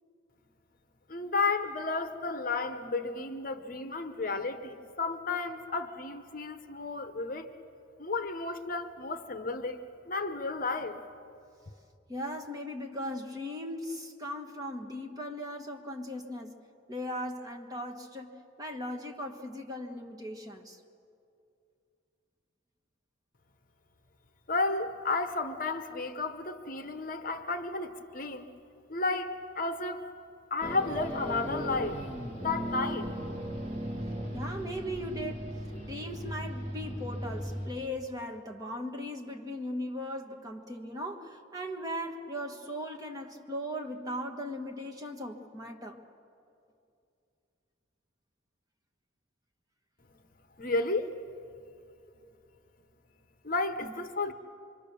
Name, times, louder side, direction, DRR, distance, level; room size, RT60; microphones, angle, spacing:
voice 1, 1.1-7.5 8.0-11.0 24.5-28.5 28.9-30.1 30.5-32.1 32.4-33.1 50.6-51.1 53.4-54.3, left 3 dB, 45° left, 8 dB, 1.0 m, -32 dB
voice 2, 12.1-16.6 16.9-18.3 18.6-20.8 34.3-35.5 35.8-46.0 53.8-53.9, equal, 20° right, 2 dB, 1.5 m, -38 dB
sound 1, 30.6-37.7, equal, 40° right, 2.6 m, -37 dB
25.5 x 24.0 x 6.9 m, 2.6 s
head